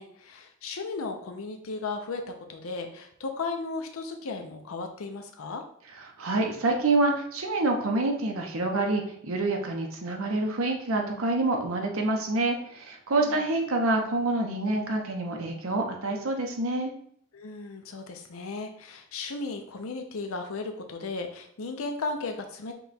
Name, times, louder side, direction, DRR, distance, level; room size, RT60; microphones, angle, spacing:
voice 1, 0.0-5.6 13.1-13.4 17.3-22.7, left 3 dB, 80° left, 4 dB, 0.6 m, -35 dB
voice 2, 6.2-16.9, right 2 dB, 80° right, 2 dB, 0.8 m, -27 dB
5.5 x 2.3 x 4.1 m, 0.64 s
head